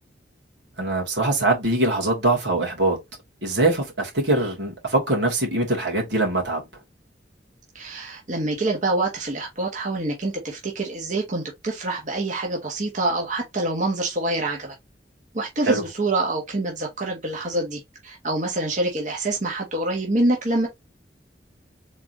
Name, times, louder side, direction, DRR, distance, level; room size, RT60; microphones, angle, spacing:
voice 1, 0.8-3.0 3.4-6.6 15.6-15.8, right 2 dB, 80° right, 2.8 m, -22 dB
voice 2, 7.7-14.7 15.3-20.7, right 2 dB, 45° right, 1.3 m, -26 dB
4.4 x 3.9 x 3.0 m
head